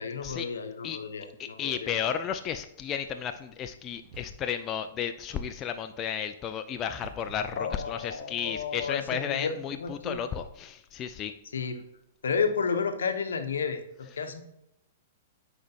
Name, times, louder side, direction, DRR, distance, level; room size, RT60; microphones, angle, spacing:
voice 1, 0.0-1.9 7.6-10.2 11.5-11.8 12.2-14.4, left 5 dB, 80° left, 7 dB, 0.8 m, -32 dB
voice 2, 1.4-11.3, left 8 dB, 30° left, 8 dB, 0.3 m, -33 dB
sound 1, 3.9-4.7 6.2-8.5, right 2 dB, 45° right, 1.1 m, -50 dB
10.0 x 4.4 x 2.8 m, 0.82 s
hypercardioid pair, 115°, 0 cm